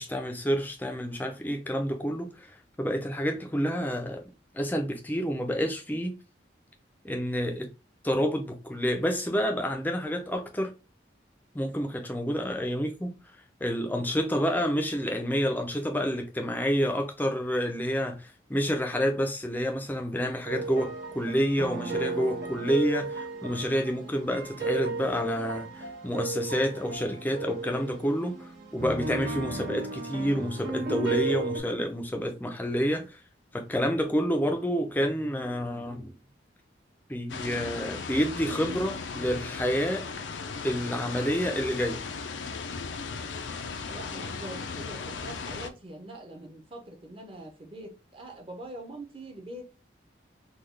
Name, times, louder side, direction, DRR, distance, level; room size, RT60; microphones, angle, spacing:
voice 1, 0.0-4.2 4.5-6.2 7.0-7.7 8.0-10.7 11.5-13.1 13.6-33.2 33.5-36.1 37.1-40.1 40.6-42.0, equal, 10° left, 0.4 m, -29 dB
sound 1, 20.4-31.6, right 3 dB, 80° right, 1.5 m, -35 dB
sound 2, 37.3-45.7, left 5 dB, 85° left, 0.5 m, -37 dB
voice 2, 43.8-49.7, right 1 dB, 30° right, 0.7 m, -43 dB
3.8 x 2.3 x 3.1 m
head